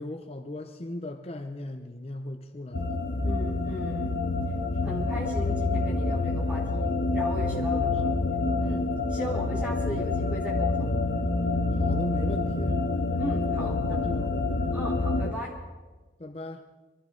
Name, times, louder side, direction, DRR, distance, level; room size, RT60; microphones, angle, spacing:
voice 1, 0.0-3.0 4.8-5.1 7.5-8.3 11.8-12.8 13.6-14.5 16.2-16.6, left 1 dB, 35° left, 6 dB, 0.7 m, -38 dB
sound 1, 2.7-15.3, left 3 dB, 75° left, 1.1 m, -27 dB
voice 2, 3.2-4.2 4.8-8.1 8.6-8.8 9.1-10.9 13.2-14.0 14.7-15.5, equal, 5° right, -4 dB, 3.8 m, -37 dB
23.5 x 14.0 x 3.9 m, 1.3 s
head